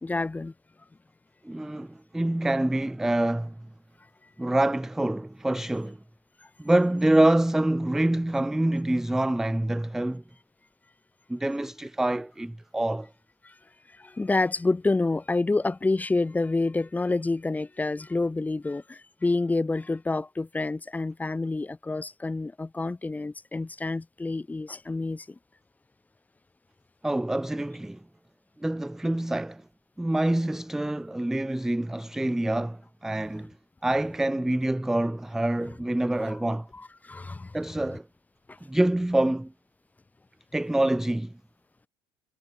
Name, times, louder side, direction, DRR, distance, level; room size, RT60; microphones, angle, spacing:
voice 1, 0.0-0.5 13.4-13.5 14.0-25.4 36.7-37.5 38.5-38.6, left 3 dB, 15° left, 1.5 m, -28 dB
voice 2, 1.4-3.5 4.4-6.0 6.6-10.2 11.3-13.1 27.0-28.0 28.6-29.6 30.0-33.5 33.8-36.7 37.5-38.1 38.7-39.5 40.5-41.3, right 1 dB, 5° right, 0.4 m, -26 dB
hypercardioid pair, 75°, 11 cm